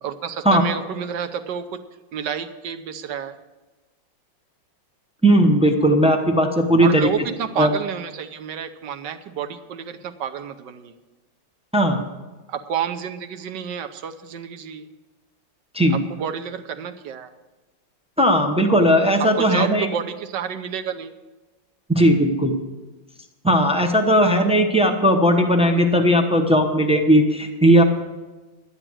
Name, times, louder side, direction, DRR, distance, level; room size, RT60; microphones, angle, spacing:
voice 1, 0.0-1.8 2.1-3.4 6.8-10.9 12.5-14.9 15.9-17.3 19.2-21.1, right 8 dB, 65° right, 7 dB, 1.3 m, -30 dB
voice 2, 5.2-7.1 7.6-7.7 11.7-12.0 15.7-16.0 18.2-19.9 21.9-22.5 23.4-27.8, equal, 5° right, 3 dB, 0.4 m, -17 dB
12.5 x 10.0 x 6.2 m, 1.2 s
omnidirectional pair, 2.2 m